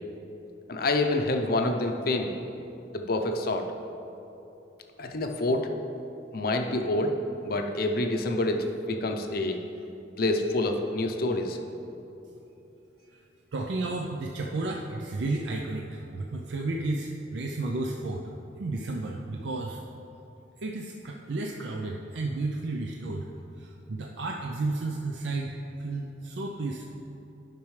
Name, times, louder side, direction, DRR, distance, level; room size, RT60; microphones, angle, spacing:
voice 1, 0.7-2.3 2.9-3.7 5.0-5.7 6.3-7.2 7.4-9.6 10.2-11.6, left 2 dB, 55° left, 4 dB, 0.6 m, -27 dB
voice 2, 13.5-18.2 18.6-19.8 20.6-23.3 23.6-26.9, right 2 dB, 75° right, 1 dB, 0.5 m, -32 dB
10.5 x 6.0 x 3.2 m, 2.9 s
head